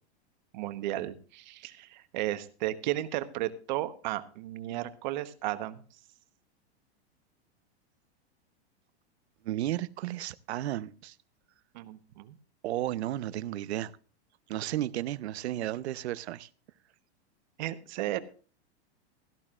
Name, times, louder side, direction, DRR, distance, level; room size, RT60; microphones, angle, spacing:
voice 1, 0.5-5.8 11.7-12.4 17.6-18.2, right 15 dB, 45° right, 11 dB, 1.1 m, -34 dB
voice 2, 9.4-11.1 12.6-13.9 14.5-16.5, right 13 dB, 75° right, 16 dB, 0.8 m, -33 dB
16.5 x 13.5 x 2.5 m, 0.38 s
supercardioid pair, 175°, 33 cm